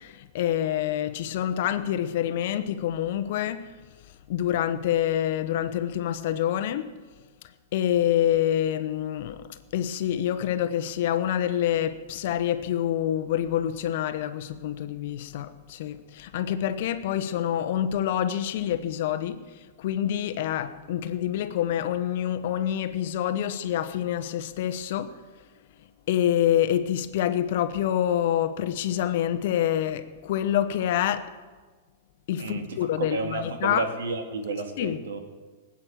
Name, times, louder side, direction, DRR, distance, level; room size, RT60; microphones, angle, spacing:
voice 1, 0.0-3.7 4.3-6.9 7.7-25.2 26.1-31.3 32.3-33.8 34.8-35.0, left 11 dB, 60° left, 1.1 m, -27 dB
voice 2, 33.0-35.2, right 3 dB, 80° right, 2.4 m, -31 dB
19.5 x 8.6 x 7.5 m
hypercardioid pair, 140°, 0 cm